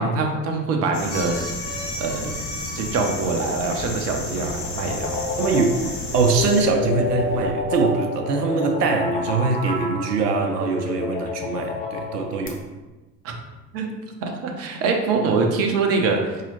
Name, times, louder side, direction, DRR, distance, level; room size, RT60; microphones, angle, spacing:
voice 1, 0.0-1.5 2.0-2.3 2.7-5.2 13.2-13.3 13.7-13.9 14.2-16.5, right 4 dB, 30° right, 2 dB, 0.6 m, -24 dB
sound 1, 0.9-6.6, left 2 dB, 55° left, 1.1 m, -33 dB
sound 2, 1.1-7.5, equal, 80° left, 1.3 m, -36 dB
sound 3, 4.0-12.5, left 4 dB, 15° left, 0.6 m, -29 dB
voice 2, 5.4-5.8 6.1-12.6, right 4 dB, 70° right, 4 dB, 0.6 m, -22 dB
4.8 x 2.8 x 2.9 m, 1.2 s
figure-of-eight pair, 70°, 50 cm